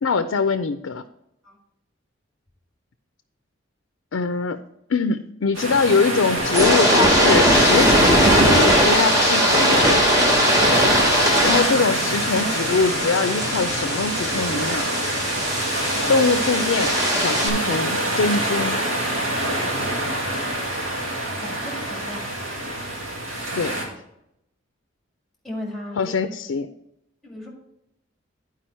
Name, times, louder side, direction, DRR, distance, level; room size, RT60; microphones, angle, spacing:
voice 1, 0.0-1.0 4.1-4.6 4.9-10.0 11.4-14.9 16.1-18.8 23.5-23.8 26.0-26.7, left 4 dB, 85° left, 9 dB, 0.5 m, -23 dB
sound 1, 5.5-23.9, right 1 dB, 90° right, 2.6 m, -25 dB
sound 2, 6.4-17.5, equal, 15° right, 1.3 m, -20 dB
voice 2, 21.4-22.3 25.4-26.0 27.2-27.5, left 1 dB, ahead, -1 dB, 2.0 m, -36 dB
10.0 x 4.9 x 4.4 m, 0.80 s
head